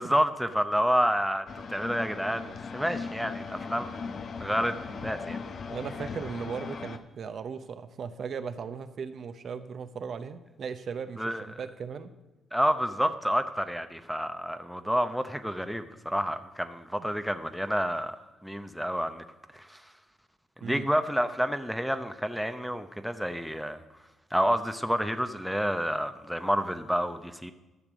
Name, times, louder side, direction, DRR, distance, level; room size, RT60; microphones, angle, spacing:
voice 1, 0.0-4.1 4.4-5.4 11.2-11.5 12.5-18.2 18.4-19.2 19.5-19.8 20.6-23.8 24.3-27.5, equal, ahead, 8 dB, 0.7 m, -29 dB
sound 1, 1.5-7.0, left 5 dB, 50° left, 0.8 m, -38 dB
voice 2, 5.7-12.1 17.0-17.1 20.6-20.9, right 6 dB, 55° right, 9 dB, 0.8 m, -37 dB
12.5 x 6.6 x 6.2 m, 1.1 s
cardioid pair, 90°, 0 cm